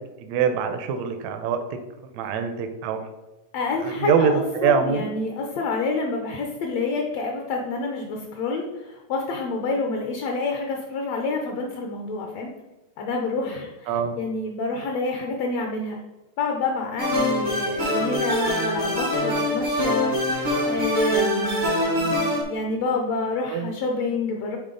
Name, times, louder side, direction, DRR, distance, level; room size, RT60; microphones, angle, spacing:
voice 1, 0.2-1.8 2.1-3.0 3.8-5.1 13.9-14.2 23.5-23.7, right 6 dB, 85° right, 7 dB, 1.6 m, -24 dB
voice 2, 3.5-12.5 13.0-16.0 16.4-24.6, left 3 dB, 75° left, 2 dB, 1.5 m, -28 dB
sound 1, 17.0-22.4, left 1 dB, 60° right, 0.6 m, -24 dB
9.6 x 3.5 x 3.8 m, 1.1 s
omnidirectional pair, 3.9 m